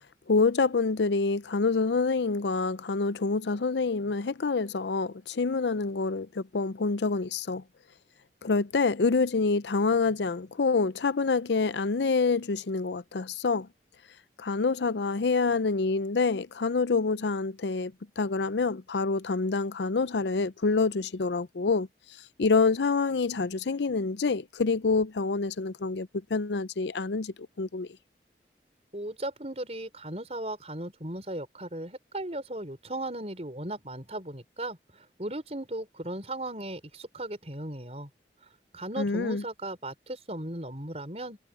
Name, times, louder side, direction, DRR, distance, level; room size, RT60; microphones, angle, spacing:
voice 1, 0.3-7.6 8.4-13.7 14.4-21.9 22.4-27.9 39.0-39.4, left 4 dB, 80° left, 0.6 m, -27 dB
voice 2, 28.9-38.1 38.7-41.4, right 1 dB, 35° right, 5.1 m, -37 dB
head